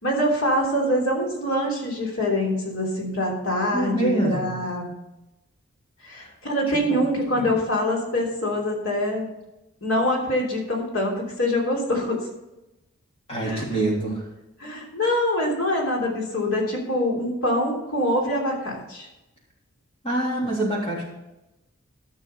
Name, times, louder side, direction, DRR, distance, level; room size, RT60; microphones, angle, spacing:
voice 1, 0.0-4.9 6.0-9.3 9.8-12.2 13.4-13.6 14.6-19.1, left 1 dB, 75° left, -1 dB, 3.3 m, -24 dB
voice 2, 3.7-4.6 6.2-6.3 6.7-6.8 7.3-7.5 13.3-14.2 20.0-21.1, right 1 dB, 25° left, -3 dB, 3.2 m, -25 dB
13.0 x 6.3 x 5.6 m, 0.96 s
head